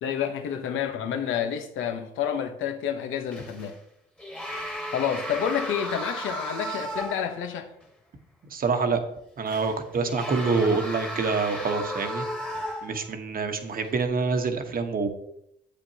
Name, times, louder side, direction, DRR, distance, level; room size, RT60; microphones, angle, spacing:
voice 1, 0.0-3.8 4.9-7.7, left 8 dB, 85° left, 1.0 m, -29 dB
sound 1, 3.3-3.8 4.2-7.4 7.8-7.9 9.5-13.2 13.8-14.1, equal, 5° left, 1.6 m, -35 dB
voice 2, 8.5-9.0 9.4-12.2 12.8-15.1, right 4 dB, 45° right, 1.2 m, -26 dB
8.6 x 8.0 x 2.9 m
cardioid pair, 90°, 20 cm